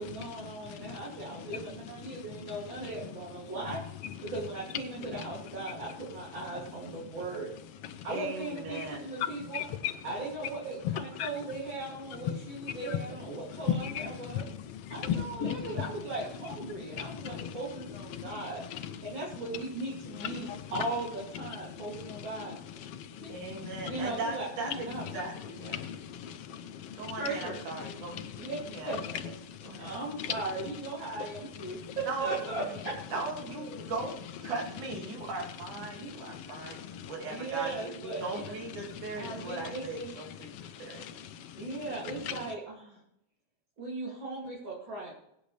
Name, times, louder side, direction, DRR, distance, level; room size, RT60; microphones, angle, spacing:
voice 1, 0.0-3.8 4.2-7.5 8.0-9.6 10.0-14.4 14.9-18.6 19.0-22.6 23.2-23.3 23.9-25.0 27.1-27.6 28.4-29.3 29.7-33.0 33.5-33.8 36.0-36.1 37.3-38.4 39.2-40.1 41.6-43.0 43.8-45.1, right 3 dB, 40° right, -5 dB, 3.5 m, -38 dB
voice 2, 0.6-1.0 2.0-2.5 7.9-8.1 8.8-8.9 9.5-9.9 10.9-11.0 11.2-11.3 12.7-13.0 13.8-15.9 16.8-17.5 18.1-18.4 18.7-19.0 20.2-20.6 22.2-22.5 23.5-24.0 25.7-27.2 27.8-28.5 29.4-29.9 30.2-30.3 31.7-32.0 33.8-33.9 35.9-37.1 38.9-39.5 40.4-41.8 42.2-42.4, left 9 dB, 65° left, 9 dB, 1.7 m, -38 dB
voice 3, 8.1-9.0 23.3-25.8 26.9-28.2 28.7-28.9 29.6-29.9 32.1-32.3 32.6-32.7 33.1-34.1 34.4-36.8 37.1-40.5 40.8-41.0, right 3 dB, 85° right, 0 dB, 4.1 m, -38 dB
21.5 x 9.7 x 3.4 m, 0.78 s
omnidirectional pair, 3.4 m